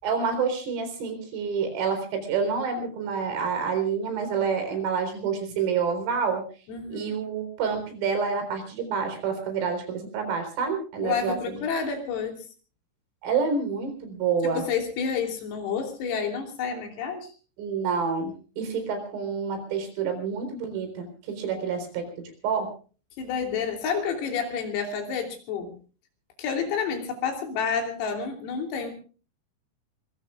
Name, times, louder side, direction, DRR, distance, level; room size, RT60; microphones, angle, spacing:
voice 1, 0.0-6.4 6.9-11.6 13.2-14.6 17.6-22.7, right 5 dB, 75° right, 6 dB, 6.8 m, -28 dB
voice 2, 6.7-7.2 11.0-12.3 14.4-17.3 23.2-25.7 26.4-28.9, left 6 dB, 85° left, 3 dB, 5.9 m, -29 dB
25.5 x 22.5 x 2.4 m, 0.37 s
omnidirectional pair, 5.9 m